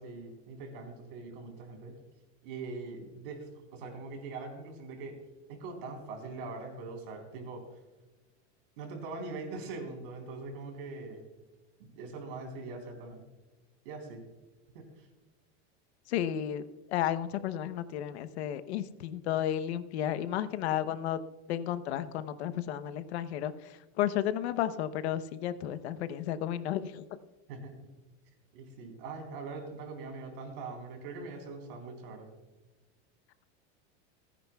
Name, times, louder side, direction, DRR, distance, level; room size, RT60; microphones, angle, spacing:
voice 1, 0.0-1.9 2.4-5.1 5.5-7.6 8.8-11.2 11.8-13.2 13.8-14.2 15.0-15.1 27.5-27.7 28.5-32.3, right 3 dB, 60° right, 2 dB, 4.0 m, -42 dB
voice 2, 16.1-16.6 16.9-21.2 21.5-23.5 24.0-27.0, left 11 dB, 85° left, 13 dB, 0.9 m, -32 dB
29.0 x 10.5 x 2.3 m, 1.2 s
supercardioid pair, 180°, 32 cm